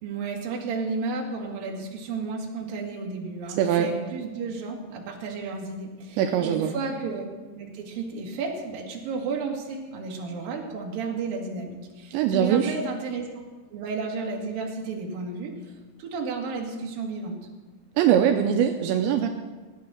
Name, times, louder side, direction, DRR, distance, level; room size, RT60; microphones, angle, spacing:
voice 1, 0.0-7.2 7.5-13.3 13.7-15.5 16.0-17.4, right 4 dB, 55° right, 0 dB, 3.3 m, -32 dB
voice 2, 3.6-3.9 6.2-6.7 12.1-12.7 18.0-19.3, right 9 dB, 85° right, 4 dB, 2.9 m, -22 dB
16.5 x 10.5 x 6.3 m, 1.3 s
omnidirectional pair, 5.4 m